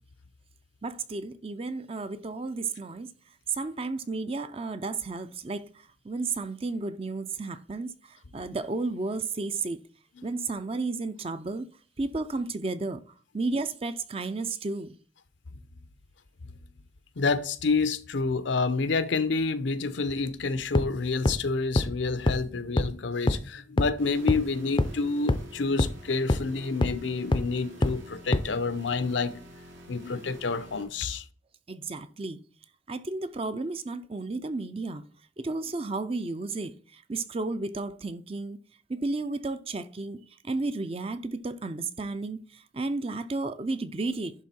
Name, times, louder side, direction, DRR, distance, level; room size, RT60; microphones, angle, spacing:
voice 1, 0.8-3.1 3.5-5.6 6.0-7.9 8.3-9.8 10.2-11.7 12.0-13.0 13.3-15.0 31.7-32.4 32.9-35.0 35.4-36.7 37.1-38.6 38.9-40.2 40.4-42.4 42.7-44.3, right 3 dB, 30° right, 0.5 m, -32 dB
voice 2, 17.2-29.4 29.9-31.2, left 4 dB, 75° left, 0.7 m, -28 dB
sound 1, 20.7-20.8 21.2-21.3 21.8-21.9 22.3-22.4 22.8-22.9 23.3-23.4 23.8-23.9 24.3-24.4 24.8-24.9 25.3-25.4 25.8-25.9 26.3-26.4 26.8-26.9 27.3-27.4 27.8-27.9 28.3-28.4, left 2 dB, 25° left, 0.5 m, -22 dB
sound 2, 24.0-30.8, equal, 80° right, 2.3 m, -47 dB
11.0 x 3.7 x 4.2 m
head